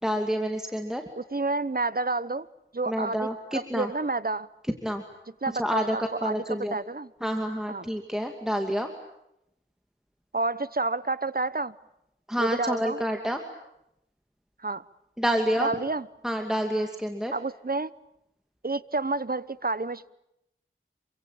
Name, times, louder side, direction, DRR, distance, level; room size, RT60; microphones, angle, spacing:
voice 1, 0.0-1.0 2.9-3.9 4.8-5.0 5.6-6.8 7.2-8.9 12.3-13.4 15.2-15.7 16.2-17.3, equal, 5° right, 4 dB, 2.5 m, -28 dB
voice 2, 1.2-2.5 2.7-3.3 3.5-4.5 5.4-7.1 7.7-7.9 10.3-11.7 12.4-13.0 14.6-14.8 15.6-16.1 17.3-17.9 18.6-20.1, right 3 dB, 45° right, 16 dB, 1.0 m, -29 dB
28.0 x 24.0 x 8.9 m, 0.82 s
wide cardioid pair, 45°, 21 cm